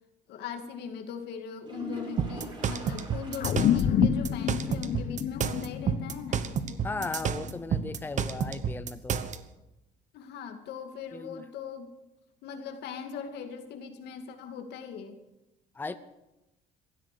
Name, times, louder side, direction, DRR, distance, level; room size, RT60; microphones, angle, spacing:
voice 1, 0.3-6.5 10.1-11.9 12.4-15.2 15.8-16.0, left 6 dB, 80° left, 6 dB, 2.2 m, -40 dB
sound 1, 1.6-3.9 4.2-4.3 4.8-4.9 8.6-8.7, right 2 dB, 25° right, 4.0 m, -43 dB
sound 2, 2.2-9.4, right 7 dB, 45° right, 1.0 m, -30 dB
sound 3, 3.4-8.2, left 10 dB, 55° left, 1.0 m, -29 dB
voice 2, 6.8-9.2 11.1-11.4 15.7-15.9, left 3 dB, 10° left, 12 dB, 0.6 m, -36 dB
16.5 x 12.5 x 6.8 m, 0.96 s
cardioid pair, 110°, 17 cm